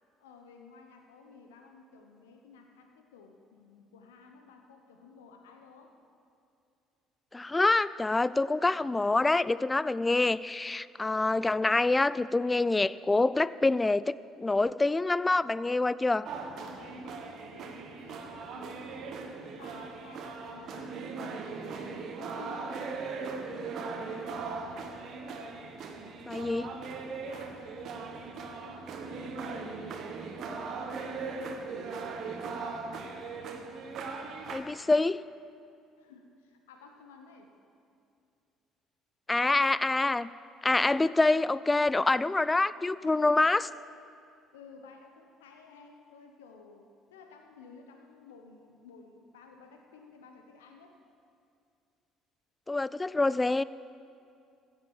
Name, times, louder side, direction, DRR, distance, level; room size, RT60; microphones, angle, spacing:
voice 1, 0.2-5.9 16.8-22.9 27.2-31.8 36.0-37.5 43.0-43.5 44.5-51.0, left 4 dB, 80° left, 4 dB, 0.9 m, -54 dB
voice 2, 7.3-16.3 26.3-26.7 34.5-35.2 39.3-40.3 40.6-43.7 52.7-53.6, left 2 dB, 20° left, 18 dB, 0.4 m, -26 dB
sound 1, 16.3-34.6, right 4 dB, 55° right, 1.3 m, -39 dB
15.0 x 7.9 x 7.2 m, 2.4 s
figure-of-eight pair, 55°, 0 cm